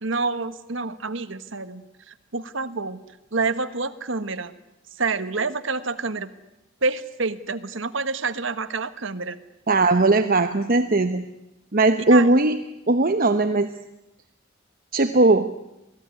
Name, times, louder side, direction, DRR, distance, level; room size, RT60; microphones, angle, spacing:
voice 1, 0.0-3.0 3.3-4.5 4.9-6.3 6.8-9.4 12.1-12.3, right 4 dB, 65° right, 10 dB, 1.4 m, -28 dB
voice 2, 9.7-11.3 11.7-12.6 12.9-13.7 14.9-15.5, right 2 dB, 45° right, 8 dB, 1.0 m, -18 dB
27.5 x 18.5 x 9.7 m, 0.93 s
head